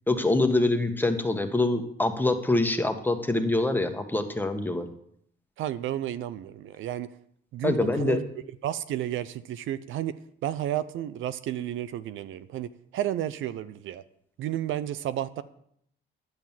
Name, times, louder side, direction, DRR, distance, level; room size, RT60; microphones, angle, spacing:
voice 1, 0.1-4.9 7.6-8.2, left 2 dB, 10° left, 6 dB, 1.4 m, -25 dB
voice 2, 5.6-7.1 7.5-8.3 8.6-10.1 10.4-14.0 14.4-15.4, right 12 dB, 80° right, 15 dB, 0.6 m, -32 dB
10.5 x 7.9 x 7.3 m, 0.70 s
cardioid pair, 90°, 20 cm